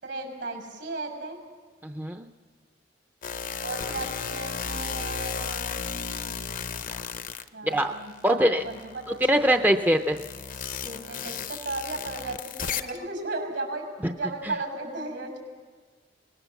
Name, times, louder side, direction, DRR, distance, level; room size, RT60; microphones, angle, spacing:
voice 1, 0.0-1.4 3.6-6.5 7.5-9.7 10.6-13.8 14.2-15.4, right 2 dB, 75° right, 4 dB, 6.2 m, -35 dB
voice 2, 1.8-2.3 7.6-7.9 8.2-8.6 9.1-10.2 14.4-14.5, equal, 10° right, 6 dB, 0.6 m, -23 dB
sound 1, 3.2-8.2 8.6-13.1, left 6 dB, 45° left, 0.7 m, -34 dB
24.0 x 20.0 x 7.1 m, 1.5 s
head